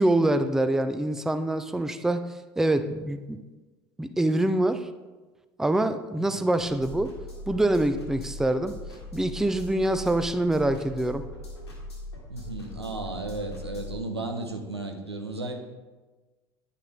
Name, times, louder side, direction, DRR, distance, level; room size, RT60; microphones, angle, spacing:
voice 1, 0.0-3.4 4.0-4.9 5.6-7.2 7.5-8.8 9.1-11.3, right 1 dB, 5° right, 0.4 m, -25 dB
sound 1, 6.6-14.0, left 1 dB, 85° left, 1.9 m, -40 dB
voice 2, 12.3-15.6, right 2 dB, 90° right, 0.8 m, -34 dB
9.8 x 6.6 x 3.6 m
figure-of-eight pair, 70°, 13 cm